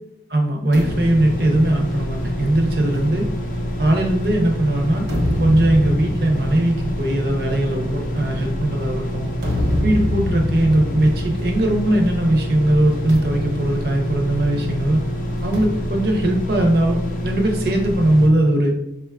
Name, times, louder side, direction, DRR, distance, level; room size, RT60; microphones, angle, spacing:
voice 1, 0.3-3.3 3.8-9.3 9.8-15.0 15.4-17.0 17.2-18.7, right 1 dB, 55° right, 2 dB, 0.6 m, -19 dB
sound 1, 0.7-18.3, left 1 dB, 45° left, 0.4 m, -27 dB
sound 2, 0.7-4.3 4.8-12.3 12.5-12.7 13.1-14.7 15.5-17.3, left 1 dB, 80° right, 0.9 m, -28 dB
4.8 x 2.2 x 2.3 m, 0.85 s
head